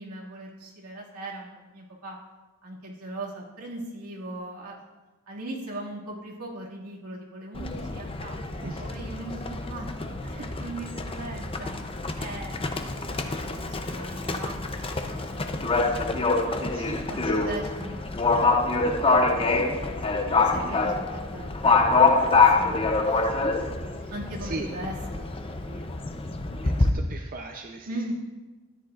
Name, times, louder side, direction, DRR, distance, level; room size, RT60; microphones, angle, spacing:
voice 1, 0.0-2.2 2.6-4.8 5.3-11.9 12.2-14.8 15.1-16.0 17.1-18.0 18.3-18.9 19.4-21.0 21.3-23.2 24.1-26.0 27.9-28.1, right 1 dB, 85° right, -4 dB, 2.2 m, -40 dB
Livestock farm animals working animals, 7.5-26.9, left 3 dB, 25° left, 0.6 m, -26 dB
voice 2, 16.7-17.5 24.0-24.1 24.4-24.7 26.6-27.9, right 3 dB, 40° right, 3 dB, 0.6 m, -38 dB
14.0 x 10.5 x 2.5 m, 1.2 s
head